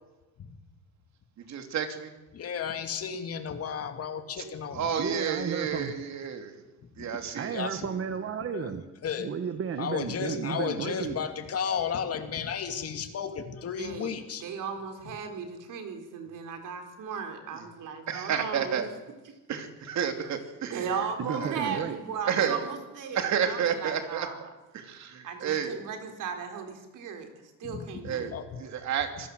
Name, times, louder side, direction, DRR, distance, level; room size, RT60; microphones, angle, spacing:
voice 1, 1.4-2.1 4.4-4.5 4.7-6.6 7.0-8.0 11.0-11.1 17.5-17.7 18.1-18.9 19.5-21.9 22.3-22.7 23.1-24.3 24.7-25.7 28.0-29.3, right 7 dB, 60° right, 6 dB, 3.0 m, -31 dB
voice 2, 2.3-4.8 7.5-7.7 8.5-8.7 9.0-9.3 9.8-14.5 27.6-28.5, left 7 dB, 50° left, 7 dB, 2.5 m, -33 dB
voice 3, 5.0-5.9 7.3-8.8 9.2-11.2 21.2-22.0, right 7 dB, 45° right, 9 dB, 1.4 m, -33 dB
voice 4, 13.8-18.8 20.7-24.4 25.2-27.3 27.6-28.3, right 6 dB, 75° right, 5 dB, 4.1 m, -36 dB
25.5 x 17.5 x 7.8 m, 1.1 s
cardioid pair, 145°, 32 cm